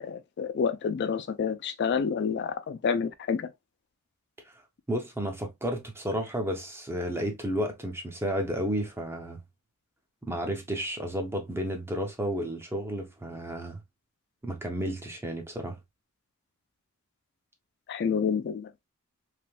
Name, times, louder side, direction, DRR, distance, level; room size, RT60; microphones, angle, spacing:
voice 1, 0.0-3.5 17.9-18.7, left 6 dB, 50° left, 0.3 m, -29 dB
voice 2, 4.9-9.4 10.2-13.8 14.4-15.8, equal, 10° right, 0.5 m, -32 dB
3.3 x 2.6 x 2.2 m
head